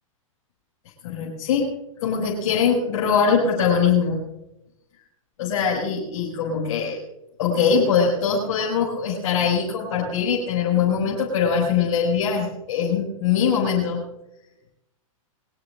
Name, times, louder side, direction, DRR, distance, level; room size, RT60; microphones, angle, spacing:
voice 1, 1.0-1.7 2.0-4.2 5.4-7.0 7.4-14.0, left 6 dB, 60° left, -5 dB, 6.0 m, -22 dB
23.5 x 18.5 x 2.5 m, 0.91 s
hypercardioid pair, 130°, 18 cm